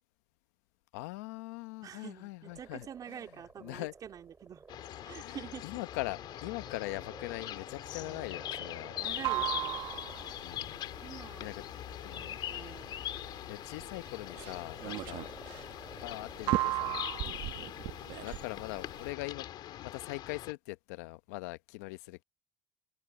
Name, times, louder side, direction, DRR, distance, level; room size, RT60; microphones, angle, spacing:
voice 1, 0.9-3.9 5.2-9.0 10.4-10.7 11.4-11.6 12.0-12.3 13.5-15.3 15.9-17.0 17.8-22.2, left 21 dB, 90° left, 0.8 m, -42 dB
voice 2, 1.8-4.6 5.0-5.6 8.0-8.3 8.6-9.8 11.0-11.5 12.2-12.9 14.9-15.2 17.2-17.5, right 9 dB, 50° right, 3.3 m, -47 dB
sound 1, 2.4-16.9, right 4 dB, 25° right, 3.8 m, -55 dB
sound 2, 4.7-20.5, left 12 dB, 65° left, 2.8 m, -42 dB
sound 3, 9.0-19.1, right 17 dB, 75° right, 1.3 m, -36 dB
supercardioid pair, 80°, 8 cm